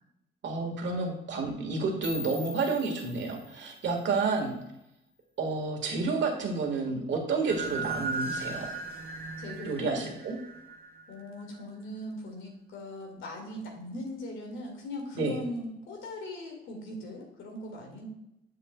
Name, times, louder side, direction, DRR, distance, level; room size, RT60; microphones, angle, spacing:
voice 1, 0.4-4.6 5.4-8.7 9.6-10.4 15.1-15.4, right 4 dB, 65° right, 2 dB, 1.7 m, -30 dB
sound 1, 2.0-5.0, left 1 dB, 25° left, 0.9 m, -44 dB
sound 2, 7.5-11.4, right 4 dB, 50° right, 1.1 m, -37 dB
voice 2, 9.4-10.2 11.1-18.1, left 1 dB, 80° left, 1 dB, 2.1 m, -39 dB
7.5 x 6.7 x 2.3 m, 0.87 s
cardioid pair, 90°, 20 cm